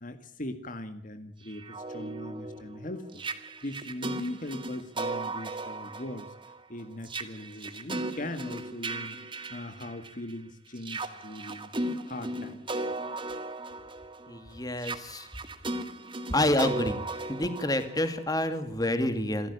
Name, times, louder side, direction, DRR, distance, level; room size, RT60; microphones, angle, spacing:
voice 1, 0.0-3.2 3.6-6.3 6.7-9.2 9.5-11.7 12.1-12.9, left 1 dB, 45° left, 9 dB, 1.9 m, -40 dB
sound 1, 1.5-10.3 10.8-18.6, right 2 dB, 30° right, 1.9 m, -37 dB
voice 2, 14.3-15.3 16.3-17.0 17.3-19.5, left 1 dB, 20° left, 9 dB, 2.4 m, -28 dB
28.5 x 15.0 x 8.3 m, 0.62 s
head